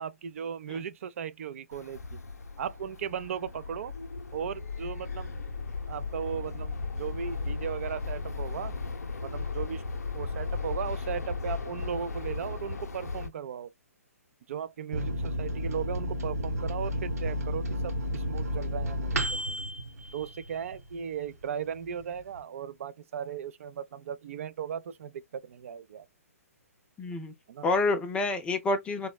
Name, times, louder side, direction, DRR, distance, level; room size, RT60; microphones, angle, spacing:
voice 1, 0.0-2.2 2.6-3.9 4.3-5.4 5.9-8.7 9.2-9.8 10.1-13.7 14.5-19.4 20.1-26.1 27.5-27.7, right 8 dB, 55° right, 0.4 m, -37 dB
sound 1, 1.7-13.3, left 4 dB, 85° left, 0.5 m, -36 dB
Microwave oven, 14.9-21.0 21.4-21.5 21.8-22.4, equal, 75° right, 0.9 m, -32 dB
voice 2, 27.0-27.3 27.6-29.1, left 2 dB, 10° left, 0.4 m, -28 dB
3.5 x 2.1 x 2.2 m
hypercardioid pair, 130°, 8 cm